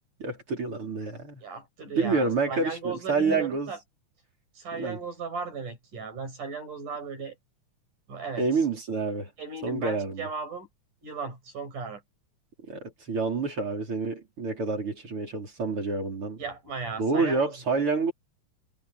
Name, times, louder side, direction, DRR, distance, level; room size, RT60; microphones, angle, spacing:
voice 1, 0.2-1.4 2.0-3.7 4.8-5.0 8.4-9.3 9.6-10.3 12.7-16.4 17.0-18.1, right 4 dB, 40° right, 5.4 m, -28 dB
voice 2, 1.4-3.8 4.6-7.4 8.1-8.4 9.4-10.7 11.0-12.0 16.4-17.5, right 4 dB, 75° right, 9.1 m, -36 dB
omnidirectional pair, 3.6 m